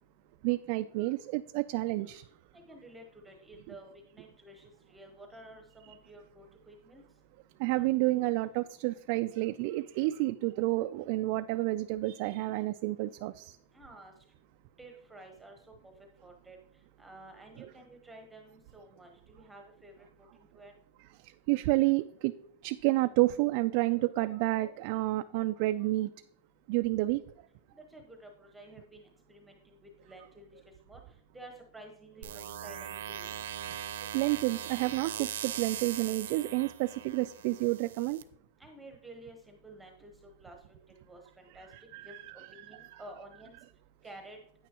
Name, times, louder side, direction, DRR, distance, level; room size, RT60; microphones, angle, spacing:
voice 1, 0.4-2.2 7.6-13.6 17.6-17.7 21.5-22.3 22.6-26.1 26.7-27.2 34.1-38.2 41.7-43.0, right 19 dB, 50° right, 9 dB, 0.3 m, -30 dB
voice 2, 2.5-7.0 13.7-14.1 14.8-15.6 16.2-16.6 17.0-20.1 20.5-20.7 27.9-29.8 30.0-30.6 30.9-31.0 31.3-33.3 38.6-40.6 41.1-41.7 42.0-42.1 42.5-43.6 44.0-44.4, right 1 dB, 5° right, 2 dB, 1.0 m, -51 dB
sound 1, 32.2-38.2, right 10 dB, 80° right, 0.7 m, -40 dB
9.1 x 9.0 x 2.9 m, 0.66 s
supercardioid pair, 150°, 0 cm